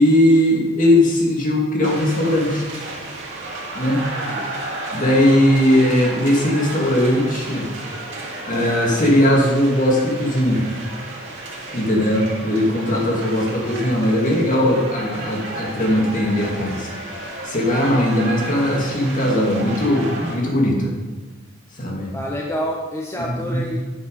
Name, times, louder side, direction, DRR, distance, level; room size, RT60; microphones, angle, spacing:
voice 1, 0.0-2.7 3.7-4.0 4.9-7.7 8.4-10.7 11.7-20.9 21.7-22.1 23.2-23.7, left 1 dB, 40° left, -1 dB, 2.1 m, -19 dB
sound 1, 1.8-20.4, right 2 dB, 65° right, 2.2 m, -33 dB
voice 2, 4.2-4.5 22.1-23.8, equal, 15° left, -2 dB, 0.9 m, -28 dB
9.2 x 6.4 x 5.2 m, 1.2 s
head